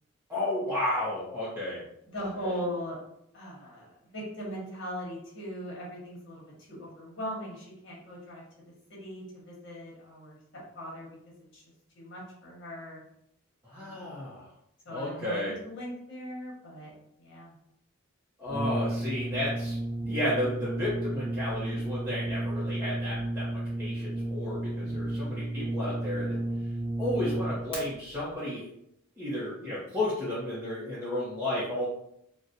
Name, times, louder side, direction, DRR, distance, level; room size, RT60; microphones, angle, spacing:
voice 1, 0.3-1.8 2.2-2.5 13.6-14.5 14.9-15.5 18.4-19.8 20.0-26.4 27.0-28.6 29.2-31.9, left 1 dB, 10° right, -9 dB, 0.6 m, -33 dB
voice 2, 2.1-3.0 3.3-6.4 6.7-8.4 8.9-11.1 11.5-11.6 11.9-13.0 13.7-14.1 14.8-16.9 17.2-17.5 24.8-25.0, equal, 60° left, -4 dB, 1.2 m, -39 dB
Brass instrument, 18.5-27.8, right 1 dB, 25° left, 1.2 m, -32 dB
4.0 x 2.1 x 2.6 m, 0.77 s
head